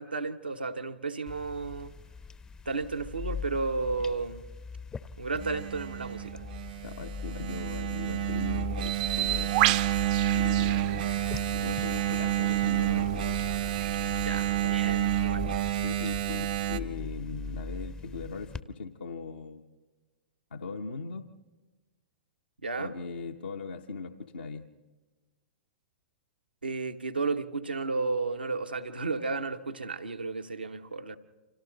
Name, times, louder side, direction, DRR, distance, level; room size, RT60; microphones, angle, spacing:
voice 1, 0.0-2.0 2.6-4.4 5.2-6.4 14.2-15.5 22.6-22.9 26.6-31.2, right 4 dB, 85° right, 7 dB, 1.1 m, -33 dB
sound 1, 1.3-18.6, left 5 dB, 15° left, 0.6 m, -40 dB
Engine, 5.4-16.8, right 14 dB, 65° right, 1.0 m, -29 dB
voice 2, 6.8-9.8 10.3-11.0 11.5-13.3 14.6-14.8 15.8-19.6 20.5-21.3 22.8-24.7, left 4 dB, 80° left, 2 dB, 0.9 m, -39 dB
Bird, 8.8-15.2, right 15 dB, 45° right, 0.6 m, -33 dB
29.5 x 25.5 x 4.0 m, 1.3 s
figure-of-eight pair, 110°, 5 cm